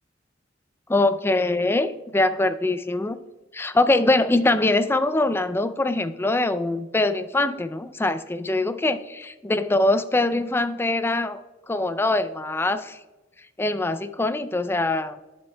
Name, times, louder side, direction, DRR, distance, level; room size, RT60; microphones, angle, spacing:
voice 1, 0.9-3.2 3.5-11.4 11.7-13.0 13.6-15.2, left 2 dB, 10° left, 11 dB, 0.3 m, -23 dB
10.5 x 7.1 x 2.2 m, 1.1 s
head